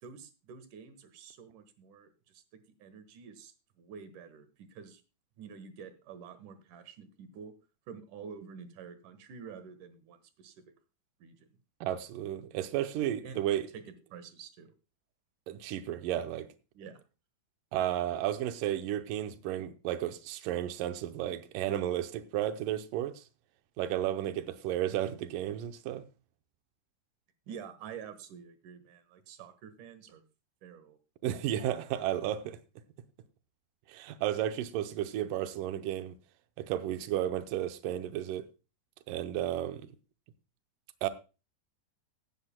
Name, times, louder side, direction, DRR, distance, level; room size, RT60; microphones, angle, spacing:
voice 1, 0.0-2.4 2.8-5.0 5.4-7.5 7.9-10.5 11.2-11.4 13.2-13.4 13.7-13.8 14.1-14.7 16.7-17.0 27.5-30.2 30.6-31.0, right 6 dB, 60° right, 2.5 m, -48 dB
voice 2, 11.8-13.7 15.5-16.5 17.7-23.2 23.8-26.0 31.2-32.6 33.9-36.1 36.6-38.5 39.1-39.9 41.0-41.1, right 12 dB, 90° right, 1.9 m, -33 dB
16.0 x 12.5 x 2.2 m
omnidirectional pair, 4.9 m